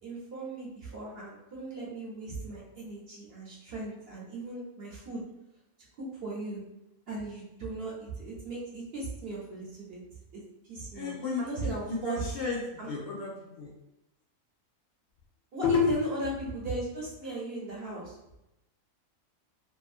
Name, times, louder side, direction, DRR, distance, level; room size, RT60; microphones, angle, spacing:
voice 1, 0.0-5.2 6.0-6.6 7.1-10.0 10.3-10.4 10.7-11.1 11.4-12.3 12.8-12.9 15.5-18.2, right 2 dB, 55° right, -5 dB, 0.8 m, -37 dB
voice 2, 10.9-11.4 11.9-12.6 12.9-13.3 13.6-13.7 15.6-15.9, left 7 dB, 65° left, -3 dB, 0.8 m, -30 dB
2.6 x 2.5 x 2.4 m, 0.92 s
omnidirectional pair, 1.4 m